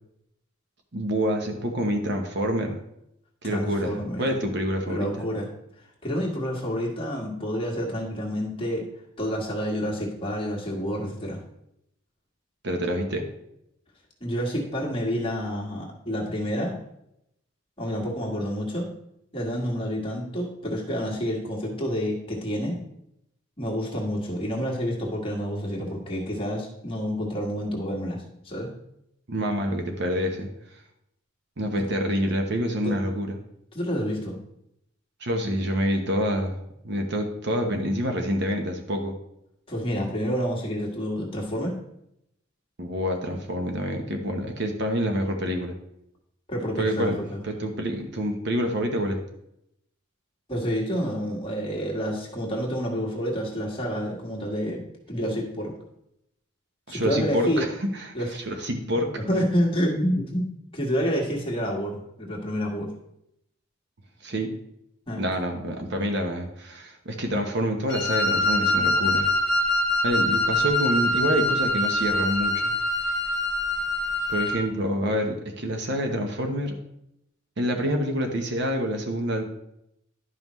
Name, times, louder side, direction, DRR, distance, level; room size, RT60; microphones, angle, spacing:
voice 1, 0.9-2.8 3.4-5.1 12.6-13.2 29.3-30.8 31.6-33.4 35.2-36.6 36.8-39.1 42.8-45.7 46.8-49.2 56.9-59.1 64.2-64.5 65.2-69.3 70.0-72.7 74.3-76.8 77.6-79.4, equal, 55° right, 4 dB, 1.0 m, -27 dB
voice 2, 3.4-4.3 4.8-5.5 5.8-8.9 9.2-11.4 14.2-16.8 17.8-18.9 19.3-22.8 23.6-28.7 31.8-31.9 32.8-33.0 33.7-34.4 39.7-41.8 46.5-47.4 50.5-54.8 55.1-55.7 56.9-57.7 58.1-58.3 59.3-62.9 65.1-65.2, equal, 25° left, -2 dB, 1.6 m, -28 dB
Wind instrument woodwind instrument, 67.9-74.6, left 1 dB, 55° left, 1.3 m, -24 dB
11.0 x 5.4 x 3.1 m, 0.80 s
head